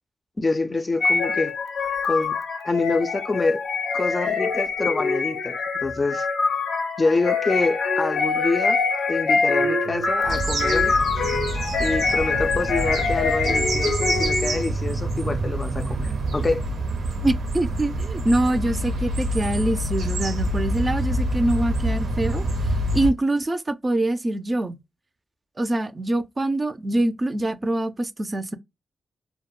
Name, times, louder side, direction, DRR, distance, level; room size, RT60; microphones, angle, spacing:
voice 1, 0.4-1.5 2.0-2.4 2.6-3.6 3.9-6.3 7.0-8.8 9.1-10.9 11.8-16.6, left 3 dB, 35° left, 0.4 m, -26 dB
sound 1, 1.0-14.7, left 4 dB, 80° left, 0.6 m, -24 dB
sound 2, 10.2-23.1, right 1 dB, 85° right, 0.5 m, -26 dB
voice 2, 17.2-22.4 22.9-24.8 25.6-28.6, right 1 dB, 35° right, 0.4 m, -24 dB
2.2 x 2.1 x 2.9 m
cardioid pair, 55°, 0 cm